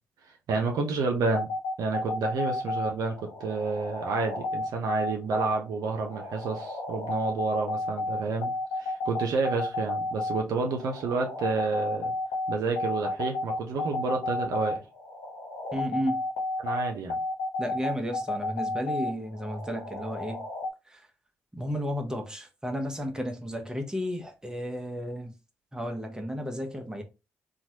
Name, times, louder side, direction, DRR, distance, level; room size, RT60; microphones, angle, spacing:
voice 1, 0.5-1.5 1.8-8.5 8.8-12.1 12.5-14.8 16.6-17.2, right 4 dB, 65° right, 0.7 m, -29 dB
sound 1, 1.3-20.7, left 2 dB, 75° left, 0.5 m, -32 dB
voice 2, 15.7-16.2 17.6-20.4 20.9-21.0 21.5-25.3 25.7-27.0, equal, 10° right, 0.9 m, -33 dB
3.0 x 2.4 x 2.8 m
hypercardioid pair, 40°, 7 cm